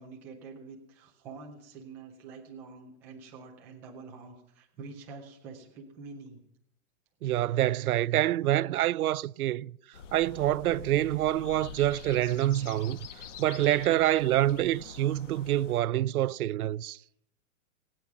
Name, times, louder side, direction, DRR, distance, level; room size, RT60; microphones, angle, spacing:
voice 1, 0.0-6.4 16.9-17.1, right 4 dB, 5° right, 0.4 m, -46 dB
voice 2, 7.2-9.7 10.1-13.1 13.4-17.0, right 13 dB, 85° right, 0.6 m, -26 dB
sound 1, 9.9-15.8, left 7 dB, 55° left, 1.3 m, -46 dB
20.0 x 9.1 x 5.9 m
hypercardioid pair, 165°, 43 cm